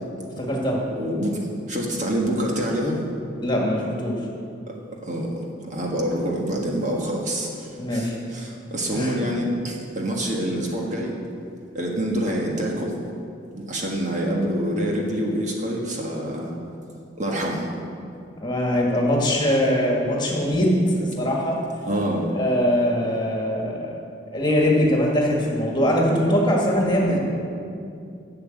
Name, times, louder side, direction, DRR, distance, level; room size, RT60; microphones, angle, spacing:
voice 1, 0.4-0.8 3.4-4.1 7.8-8.1 8.9-9.1 18.4-20.7 21.0-21.6 22.3-23.9 24.3-27.2, equal, 25° left, -2 dB, 1.9 m, -22 dB
voice 2, 0.9-3.0 5.0-11.2 11.7-13.0 13.5-16.5 17.2-17.7 21.8-22.3 27.1-27.2, equal, 40° right, -1 dB, 1.5 m, -26 dB
11.5 x 7.0 x 7.9 m, 2.5 s
head